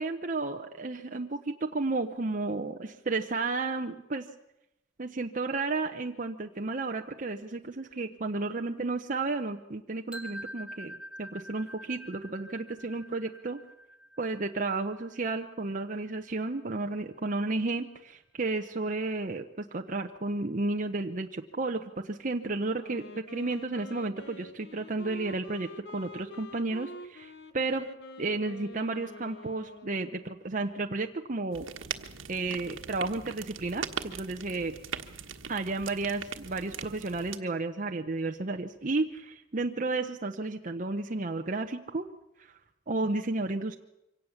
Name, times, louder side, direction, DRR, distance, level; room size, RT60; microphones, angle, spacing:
voice 1, 0.0-4.3 5.0-13.6 14.2-27.9 28.2-31.7 32.3-34.8 35.5-42.1 42.4-42.5 42.9-43.7, right 3 dB, 40° right, 4 dB, 0.9 m, -32 dB
sound 1, 10.1-16.0, equal, 5° right, 1.7 m, -46 dB
Wind instrument woodwind instrument, 22.8-30.5, left 1 dB, 60° left, 1.1 m, -47 dB
sound 2, 31.5-37.4, right 6 dB, 85° right, 1.4 m, -40 dB
24.5 x 18.0 x 7.2 m, 0.88 s
head